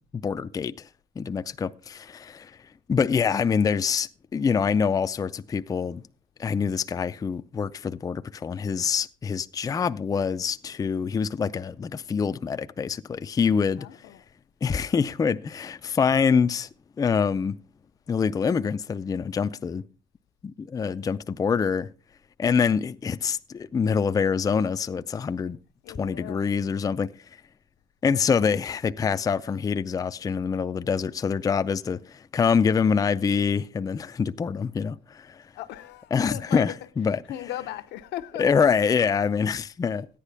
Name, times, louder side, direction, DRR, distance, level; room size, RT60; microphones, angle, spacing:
voice 1, 0.1-0.9 1.2-2.5 2.9-6.0 6.4-13.9 14.6-16.7 17.0-17.5 18.1-19.8 20.4-21.9 22.4-25.6 26.0-27.1 28.0-35.4 36.1-37.2 38.4-40.1, left 6 dB, 20° left, 0.4 m, -25 dB
voice 2, 13.8-14.2 25.8-26.5 35.6-36.7 37.3-38.5, left 13 dB, 80° left, 0.8 m, -37 dB
14.0 x 9.9 x 3.4 m
cardioid pair, 110°, 17 cm